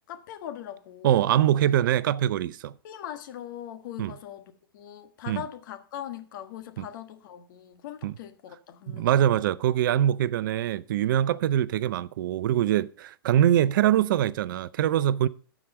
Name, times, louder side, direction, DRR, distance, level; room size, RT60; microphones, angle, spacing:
voice 1, 0.1-1.3 2.8-9.3, left 11 dB, 55° left, 1.4 m, -41 dB
voice 2, 1.0-2.7 4.0-4.1 5.3-5.4 6.8-6.9 8.0-8.1 8.9-15.3, right 11 dB, 60° right, 0.6 m, -23 dB
14.0 x 5.0 x 5.4 m
hypercardioid pair, 120°, 12 cm